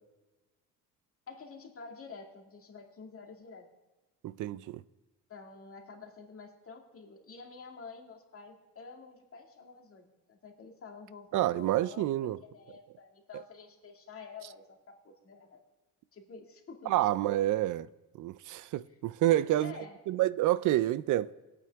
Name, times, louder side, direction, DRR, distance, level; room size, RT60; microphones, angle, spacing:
voice 1, 1.3-3.7 5.3-15.6 16.1-16.9 18.9-19.0 19.6-20.0, left 4 dB, 40° left, 2.2 m, -49 dB
voice 2, 4.2-4.8 11.3-12.4 16.9-17.9 18.2-19.7 20.1-21.3, right 14 dB, 55° right, 0.5 m, -28 dB
20.0 x 8.9 x 3.5 m
cardioid pair, 120°, 36 cm